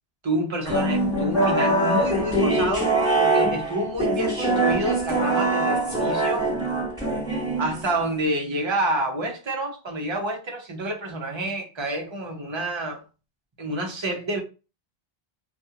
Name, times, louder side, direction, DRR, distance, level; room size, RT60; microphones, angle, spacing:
voice 1, 0.2-6.5 7.6-13.0 13.6-14.4, right 1 dB, 30° right, 0.6 m, -28 dB
sound 1, 0.7-8.0, right 2 dB, 5° right, 1.2 m, -23 dB
2.4 x 2.3 x 2.7 m
omnidirectional pair, 1.0 m